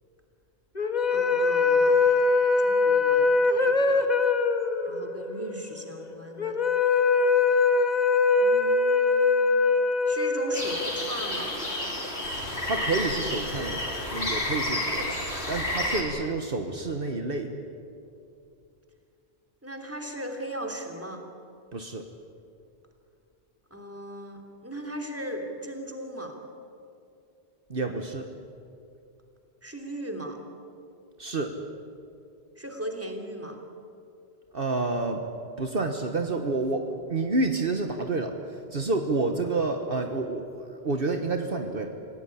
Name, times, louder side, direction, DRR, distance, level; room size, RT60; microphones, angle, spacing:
sound 1, 0.8-11.2, left 4 dB, 40° left, 1.6 m, -23 dB
voice 1, 1.1-2.2 2.6-4.1 4.9-6.6 8.4-9.5 10.1-11.6 19.6-21.2 23.7-26.4 29.6-30.4 32.6-33.6, right 1 dB, 15° right, 2 dB, 3.0 m, -38 dB
sound 2, 10.5-16.0, left 1 dB, 75° left, 4.8 m, -30 dB
voice 2, 12.7-15.2 15.5-17.5 21.7-22.1 27.7-28.3 31.2-31.6 34.5-35.3 35.6-42.0, right 3 dB, 60° right, 5 dB, 1.5 m, -29 dB
27.0 x 17.0 x 9.9 m, 2.5 s
omnidirectional pair, 1.1 m